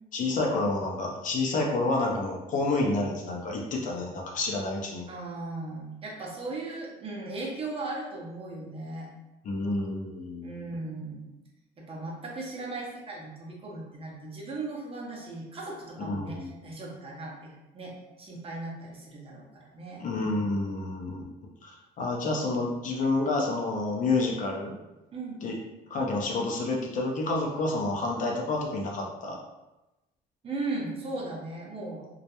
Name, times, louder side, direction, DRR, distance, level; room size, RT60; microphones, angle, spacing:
voice 1, 0.1-5.0 9.4-10.7 16.0-16.5 20.0-21.2 21.6-24.8 25.4-25.6 25.9-29.4, left 2 dB, 50° left, -1 dB, 0.5 m, -29 dB
voice 2, 5.1-9.1 10.4-11.3 11.8-20.0 25.1-25.4 30.4-32.2, right 2 dB, 35° right, -2 dB, 0.6 m, -37 dB
2.3 x 2.0 x 2.8 m, 1.0 s
cardioid pair, 110°, 17 cm